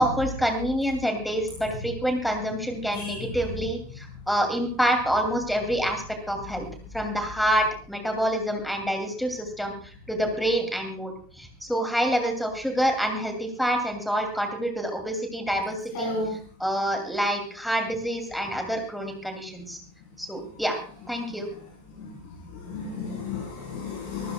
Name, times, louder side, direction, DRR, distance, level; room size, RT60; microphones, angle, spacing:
voice 1, 0.0-6.6 6.9-16.1 16.6-19.8 20.2-20.8 21.1-21.5, equal, ahead, 6 dB, 2.8 m, -27 dB
voice 2, 2.9-3.3 15.9-16.3 22.0-22.1 22.6-24.3, left 3 dB, 45° left, -1 dB, 4.2 m, -32 dB
24.5 x 14.5 x 2.3 m, 0.41 s
figure-of-eight pair, 90°, 0 cm